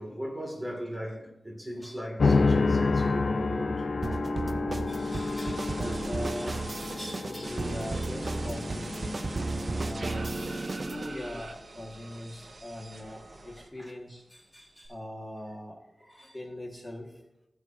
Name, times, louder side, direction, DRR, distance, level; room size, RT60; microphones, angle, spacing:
voice 1, 0.0-4.1 13.8-13.9 16.0-16.4, equal, 15° right, 2.2 m, -38 dB
sound 1, 2.2-10.6, left 3 dB, 85° left, 0.5 m, -29 dB
sound 2, 4.0-11.1, right 3 dB, 45° right, 0.3 m, -34 dB
voice 2, 4.9-9.6 9.8-17.2, left 1 dB, 15° left, 1.6 m, -41 dB
sound 3, 4.9-6.9 7.4-14.0 14.3-14.9, right 2 dB, 80° right, 1.1 m, -44 dB
15.5 x 6.3 x 2.7 m
wide cardioid pair, 95°, 0 cm